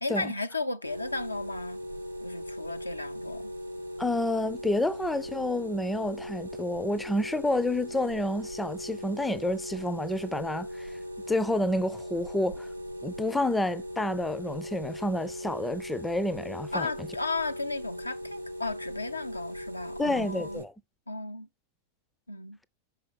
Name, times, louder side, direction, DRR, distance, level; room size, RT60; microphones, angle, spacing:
voice 1, 0.0-1.8 2.2-3.5 16.7-20.6 21.1-21.5 22.3-22.6, left 3 dB, 85° left, 0.5 m, -34 dB
sound 1, 0.8-20.6, equal, 85° right, 0.8 m, -39 dB
voice 2, 4.0-10.9 11.3-12.7 13.0-16.9 20.0-20.7, left 1 dB, 5° left, 0.5 m, -29 dB
6.0 x 4.8 x 3.3 m
figure-of-eight pair, 90°, 0 cm